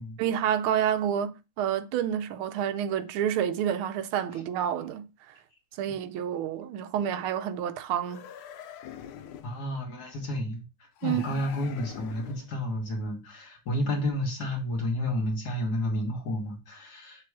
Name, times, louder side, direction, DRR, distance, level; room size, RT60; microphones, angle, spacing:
voice 1, 0.2-5.3 5.8-8.3 11.0-11.4, right 9 dB, 80° right, 1.4 m, -29 dB
sound 1, 8.0-9.6 11.0-12.6, left 9 dB, 80° left, 1.5 m, -45 dB
voice 2, 9.4-10.6 11.0-17.3, left 1 dB, 50° left, 1.8 m, -31 dB
6.8 x 3.0 x 4.6 m
omnidirectional pair, 2.4 m